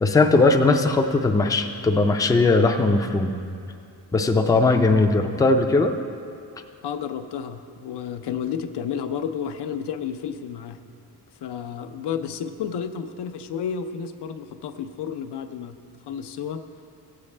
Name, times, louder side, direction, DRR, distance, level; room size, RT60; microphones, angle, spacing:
voice 1, 0.0-3.3 4.1-5.9, left 3 dB, 10° left, 4 dB, 0.3 m, -19 dB
voice 2, 6.8-10.8 11.4-15.8 16.1-16.6, left 7 dB, 80° left, 8 dB, 0.6 m, -31 dB
15.5 x 8.4 x 3.2 m, 2.4 s
wide cardioid pair, 170°, 40 cm